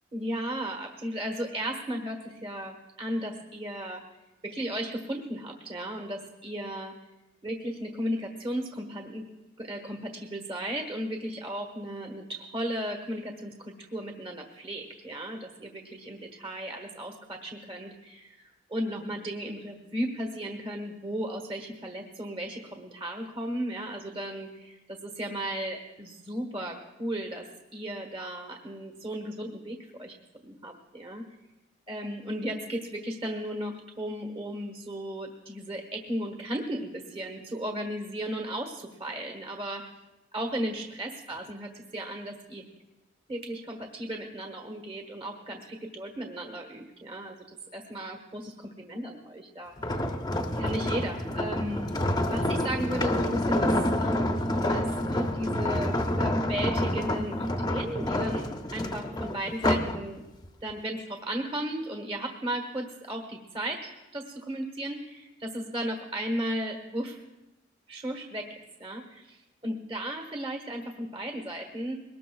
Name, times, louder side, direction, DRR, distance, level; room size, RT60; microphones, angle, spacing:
voice 1, 0.1-4.0 4.4-6.9 7.4-9.3 9.6-27.5 27.7-30.2 30.4-31.2 31.9-39.9 40.3-42.6 43.3-50.2 50.6-53.7 54.0-60.2 60.6-67.2 67.9-68.5 68.8-71.9, right 1 dB, 30° right, 3 dB, 1.3 m, -35 dB
sound 1, 49.8-60.0 60.4-60.7, left 1 dB, 20° left, 0.7 m, -28 dB
22.0 x 19.0 x 2.3 m, 0.99 s
head